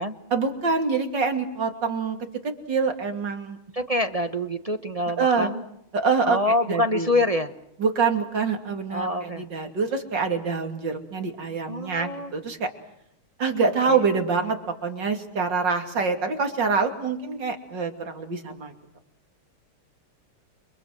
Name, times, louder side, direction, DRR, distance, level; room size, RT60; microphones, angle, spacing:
voice 1, 0.3-2.2 2.4-3.6 5.2-5.5 5.9-6.4 6.7-7.1 7.8-12.7 13.4-18.7, right 4 dB, 55° right, 5 dB, 3.4 m, -25 dB
voice 2, 3.7-5.6 6.2-7.5 8.9-9.4 11.7-12.3 13.9-14.0, left 1 dB, 30° right, 7 dB, 0.7 m, -26 dB
29.5 x 24.5 x 7.8 m, 0.75 s
omnidirectional pair, 2.4 m